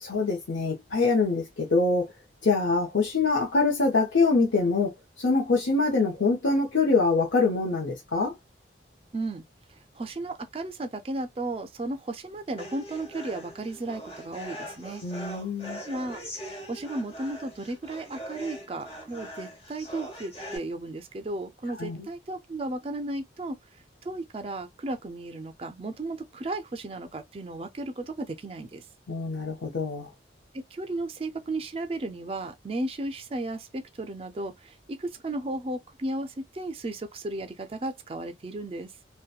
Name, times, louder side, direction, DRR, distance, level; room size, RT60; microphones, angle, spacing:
voice 1, 0.0-2.1 2.4-8.4 15.0-15.8 21.8-22.1 29.1-30.1, left 3 dB, 85° left, 0.7 m, -24 dB
voice 2, 9.1-9.4 9.9-15.0 15.9-16.2 16.7-23.6 24.0-28.8 30.7-38.9, right 2 dB, 30° right, 0.3 m, -34 dB
sound 1, 12.6-20.6, equal, 30° left, 1.0 m, -41 dB
2.8 x 2.1 x 2.3 m
head